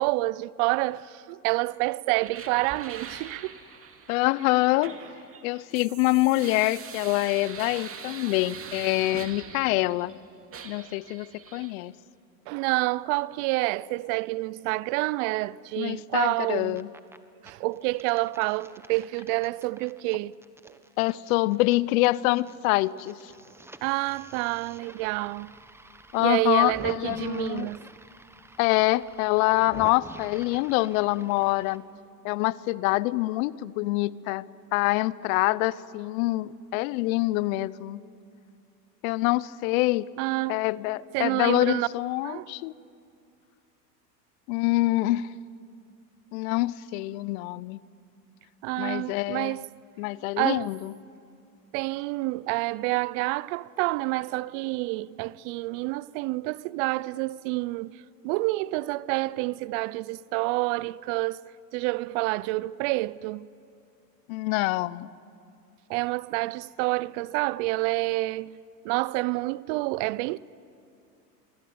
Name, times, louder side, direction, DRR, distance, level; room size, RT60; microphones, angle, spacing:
voice 1, 0.0-3.5 12.5-16.8 17.4-20.3 20.6-20.7 23.8-25.5 26.2-27.9 40.2-40.6 41.1-41.9 42.2-42.5 48.6-49.7 50.4-50.7 51.7-57.9 58.2-61.4 61.7-63.5 65.9-68.6 68.8-70.4, right 21 dB, 45° right, 0.6 m, -28 dB
sound 1, 2.2-10.2 10.5-11.7, right 6 dB, 25° right, 2.4 m, -43 dB
voice 2, 4.1-4.9 5.4-10.2 10.6-11.9 15.8-16.9 21.0-23.3 26.1-27.7 28.6-31.8 32.2-34.4 34.7-38.0 39.0-40.1 40.5-42.7 44.5-45.3 46.3-47.8 48.8-49.6 50.0-50.9 64.3-65.1, left 19 dB, 55° left, 0.8 m, -25 dB
sound 2, 16.5-17.2 17.5-22.5 22.8-31.8, right 2 dB, 5° right, 1.2 m, -48 dB
26.5 x 21.5 x 9.5 m
hypercardioid pair, 105°, 50 cm